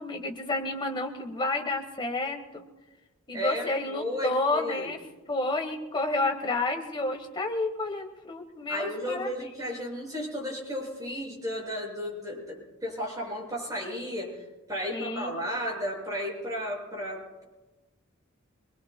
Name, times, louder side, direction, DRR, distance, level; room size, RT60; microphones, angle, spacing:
voice 1, 0.0-2.7 3.3-5.0 5.3-9.3 9.6-9.7 14.9-15.4, left 2 dB, 20° left, 3 dB, 1.5 m, -30 dB
voice 2, 3.3-4.9 8.7-14.3 14.7-17.4, equal, 15° right, -3 dB, 6.6 m, -34 dB
25.0 x 21.0 x 2.3 m, 1.1 s
head